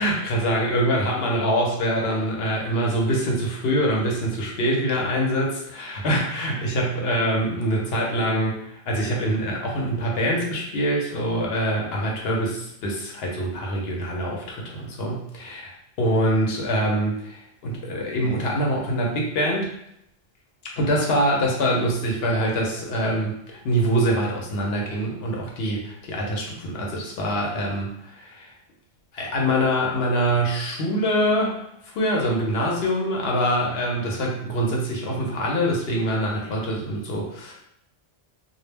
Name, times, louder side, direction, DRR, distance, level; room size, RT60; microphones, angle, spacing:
voice 1, 0.0-15.7 16.0-19.7 20.8-28.5 29.1-37.5, equal, 65° left, -1 dB, 0.9 m, -24 dB
2.2 x 2.0 x 3.3 m, 0.78 s
omnidirectional pair, 1.1 m